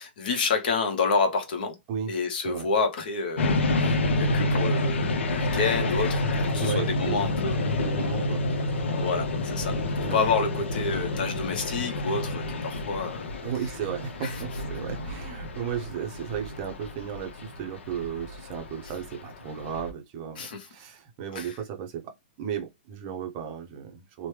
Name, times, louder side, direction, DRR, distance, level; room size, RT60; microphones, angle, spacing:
voice 1, 0.0-1.8 2.1-6.2 6.5-7.7 9.0-13.3 14.2-14.4 20.4-20.7 21.3-21.5, left 4 dB, 50° left, 0.8 m, -29 dB
sound 1, 3.4-19.9, left 2 dB, 80° left, 0.7 m, -29 dB
voice 2, 6.6-7.2 7.8-8.4 10.0-10.2 13.4-24.3, right 8 dB, 25° right, 0.6 m, -35 dB
3.0 x 2.1 x 3.2 m
hypercardioid pair, 165°, 6 cm